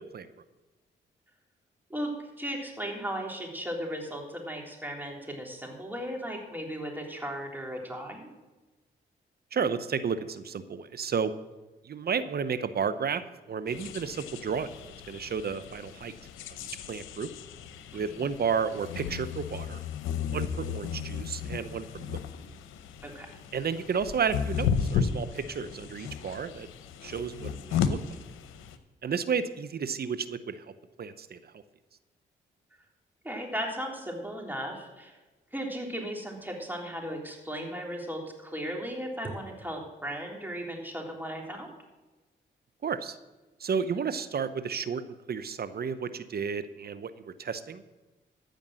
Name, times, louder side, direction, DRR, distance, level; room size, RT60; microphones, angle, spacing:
voice 1, 1.9-8.3 17.9-18.2 23.0-23.3 33.2-35.2 35.5-41.7, equal, 10° right, 0 dB, 3.5 m, -36 dB
voice 2, 9.5-11.3 11.8-13.2 13.5-14.7 15.1-16.1 16.9-17.3 17.9-19.8 20.3-22.2 23.5-26.7 27.0-28.0 29.0-30.6 31.0-31.6 42.8-43.2 43.6-45.0 45.3-47.8, right 6 dB, 50° right, 13 dB, 0.8 m, -32 dB
sound 1, 13.7-28.8, left 7 dB, 90° left, 0.8 m, -34 dB
14.5 x 5.3 x 7.6 m, 1.1 s
supercardioid pair, 50°, 20 cm